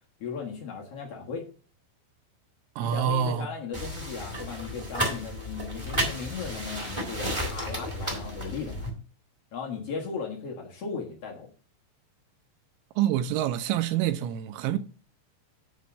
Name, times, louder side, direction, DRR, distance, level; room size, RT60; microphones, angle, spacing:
voice 1, 0.2-1.5 2.8-8.9 9.5-11.5, left 5 dB, 85° left, 1.3 m, -37 dB
voice 2, 2.8-3.5 13.0-14.8, right 10 dB, 80° right, 2.8 m, -26 dB
sound 1, 3.7-8.9, equal, 10° right, 1.7 m, -32 dB
9.6 x 3.7 x 7.1 m
omnidirectional pair, 5.3 m